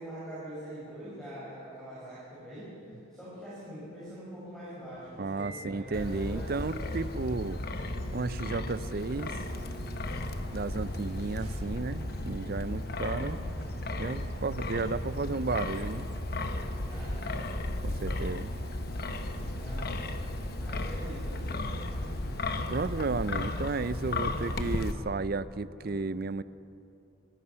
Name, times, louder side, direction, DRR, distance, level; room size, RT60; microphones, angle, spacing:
voice 1, 0.0-6.5 7.3-7.6 10.6-11.1 16.8-17.5 19.4-20.2 20.6-21.8 24.2-24.7 25.7-26.0, equal, ahead, -10 dB, 5.8 m, -45 dB
sound 1, 4.8-22.9, right 2 dB, 65° right, 6.4 m, -48 dB
voice 2, 5.2-7.6 8.1-9.4 10.5-13.4 14.0-16.1 17.8-18.5 22.7-26.4, right 3 dB, 45° right, 15 dB, 0.5 m, -33 dB
Wind, 5.9-24.9, left 2 dB, 50° left, 1.1 m, -35 dB
24.0 x 19.5 x 5.7 m, 2.8 s
head